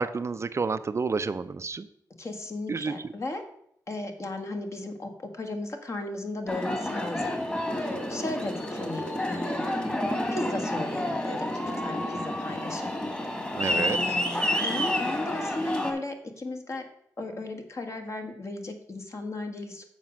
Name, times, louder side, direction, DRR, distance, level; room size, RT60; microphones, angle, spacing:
voice 1, 0.0-1.9 2.7-2.9 13.5-14.0, right 4 dB, 40° right, 12 dB, 0.5 m, -29 dB
voice 2, 2.2-3.4 3.9-7.4 7.7-9.7 10.3-11.5 11.8-13.0 13.7-16.9 17.2-19.8, left 2 dB, 45° left, 4 dB, 1.7 m, -35 dB
Aircraft, 6.5-15.9, left 1 dB, 15° left, 2.1 m, -30 dB
7.4 x 5.2 x 6.2 m, 0.70 s
cardioid pair, 60°, 7 cm